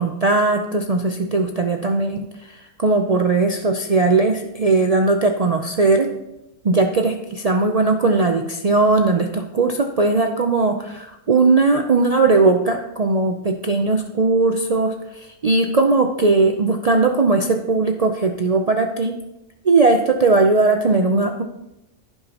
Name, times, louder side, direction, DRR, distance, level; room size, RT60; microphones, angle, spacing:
voice 1, 0.0-6.1 6.6-19.2 19.6-21.4, right 3 dB, 85° right, 4 dB, 0.3 m, -18 dB
15.0 x 5.8 x 2.9 m, 0.91 s
omnidirectional pair, 1.5 m